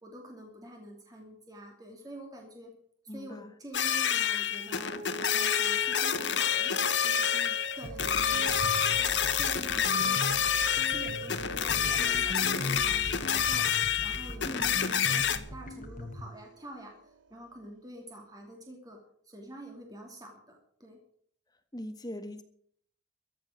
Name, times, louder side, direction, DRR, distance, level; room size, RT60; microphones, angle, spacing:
voice 1, 0.0-2.7 3.0-4.9 5.3-19.0 19.2-21.0, right 1 dB, 20° right, 1 dB, 2.9 m, -47 dB
voice 2, 3.1-3.5 14.4-14.8 21.7-22.4, left 1 dB, 20° left, 7 dB, 1.7 m, -40 dB
sound 1, 3.7-15.4, left 8 dB, 65° left, 1.2 m, -28 dB
sound 2, 4.5-17.3, right 2 dB, 70° right, 1.5 m, -44 dB
sound 3, 7.8-16.2, left 1 dB, 45° left, 1.7 m, -39 dB
14.5 x 7.6 x 9.3 m, 0.62 s
head